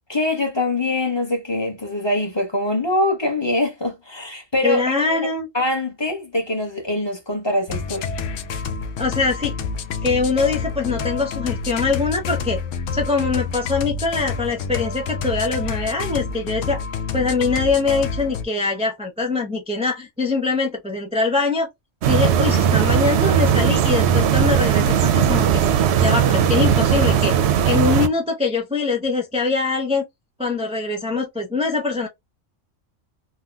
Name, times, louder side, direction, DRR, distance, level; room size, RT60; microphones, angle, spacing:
voice 1, 0.1-4.9 5.5-8.1, left 1 dB, 25° left, 0.9 m, -23 dB
voice 2, 4.6-5.5 9.0-9.5 10.0-16.8 17.1-21.7 22.1-25.6 26.0-27.3 27.6-30.0 30.4-32.1, left 4 dB, 10° right, 0.4 m, -23 dB
sound 1, 7.7-18.4, left 5 dB, 85° left, 1.0 m, -28 dB
sound 2, 22.0-28.1, right 8 dB, 65° right, 0.8 m, -18 dB
3.8 x 2.2 x 2.3 m
omnidirectional pair, 1.3 m